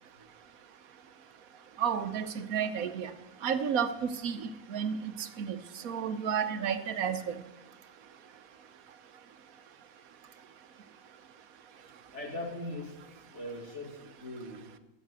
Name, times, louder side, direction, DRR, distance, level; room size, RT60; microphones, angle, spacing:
voice 1, 1.8-3.1 3.4-5.6 5.8-7.2, right 7 dB, 90° right, 10 dB, 1.3 m, -31 dB
voice 2, 12.1-13.0 13.3-14.6, left 1 dB, 55° left, 0 dB, 2.8 m, -40 dB
13.5 x 8.3 x 6.8 m, 1.0 s
omnidirectional pair, 1.4 m